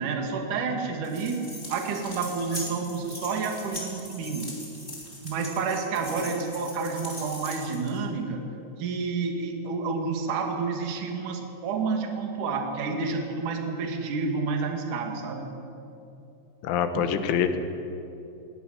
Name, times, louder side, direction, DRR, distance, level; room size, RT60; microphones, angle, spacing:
voice 1, 0.0-4.5 5.2-8.4 8.8-15.5, right 4 dB, 50° right, 3 dB, 3.2 m, -29 dB
sound 1, 1.0-8.0, left 1 dB, 10° left, 4.4 m, -40 dB
voice 2, 16.6-17.6, left 8 dB, 80° left, 8 dB, 3.7 m, -25 dB
19.0 x 18.5 x 10.0 m, 2.8 s
omnidirectional pair, 5.5 m